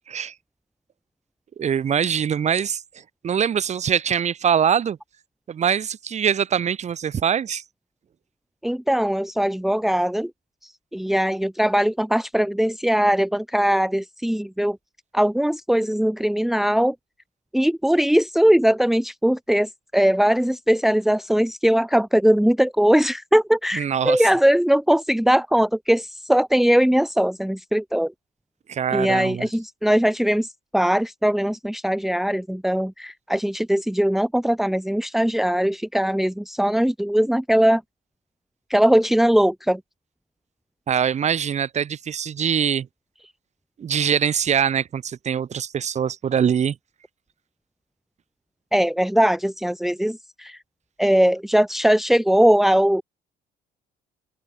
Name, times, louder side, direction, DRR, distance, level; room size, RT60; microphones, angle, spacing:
voice 1, 1.6-2.8 3.2-5.0 5.5-7.6 23.7-24.2 28.7-29.5 40.9-42.9 43.8-46.8, right 8 dB, 40° right, 2.1 m, -23 dB
voice 2, 8.6-10.3 10.6-14.8 15.1-16.9 17.5-28.1 28.9-30.5 30.7-37.8 38.7-39.8 48.7-50.6 51.0-53.0, equal, ahead, 1.4 m, -20 dB
open air
cardioid pair, 110°, 17 cm